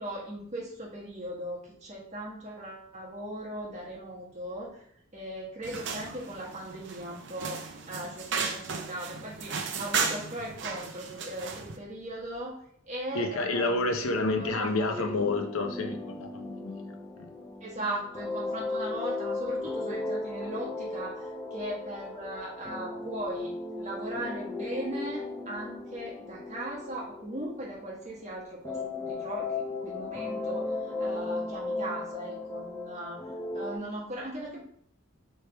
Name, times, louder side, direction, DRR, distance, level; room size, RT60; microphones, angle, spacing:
voice 1, 0.0-4.8 5.1-15.1 17.6-29.5 29.8-33.2 33.5-34.6, right 1 dB, 35° right, -5 dB, 1.4 m, -38 dB
sound 1, 5.6-11.8, right 5 dB, 60° right, 0.5 m, -35 dB
voice 2, 13.1-16.8, left 2 dB, 80° left, 4 dB, 0.7 m, -29 dB
sound 2, 14.9-28.2 28.6-33.8, left 2 dB, 15° left, 0.6 m, -36 dB
3.3 x 3.3 x 4.4 m, 0.67 s
head